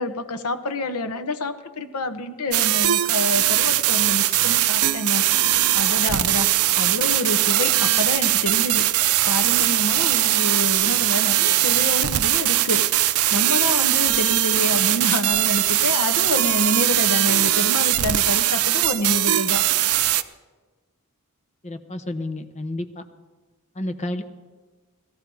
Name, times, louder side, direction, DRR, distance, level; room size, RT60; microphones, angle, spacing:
voice 1, 0.0-5.2 5.7-6.5 6.8-13.0 13.3-19.6, left 2 dB, 85° left, 9 dB, 1.0 m, -27 dB
sound 1, 2.5-20.2, right 14 dB, 70° right, 0.5 m, -20 dB
voice 2, 21.6-23.0 23.7-24.2, left 1 dB, 30° left, 7 dB, 0.8 m, -30 dB
18.0 x 13.5 x 4.7 m, 1.3 s
head